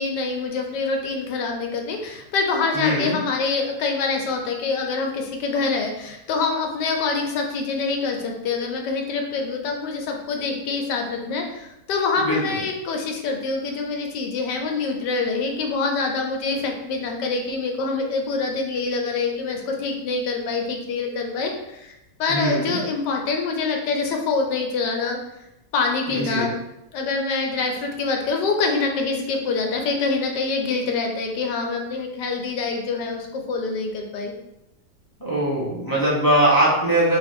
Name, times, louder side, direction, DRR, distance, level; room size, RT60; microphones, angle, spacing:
voice 1, 0.0-21.9 22.2-25.2 25.7-26.5 26.9-34.3, left 4 dB, 80° left, 2 dB, 1.3 m, -25 dB
voice 2, 2.7-3.2 12.2-12.4 22.3-22.8 26.1-26.5 35.2-37.2, right 1 dB, 15° left, -7 dB, 0.8 m, -21 dB
3.2 x 3.1 x 4.2 m, 0.88 s
omnidirectional pair, 1.9 m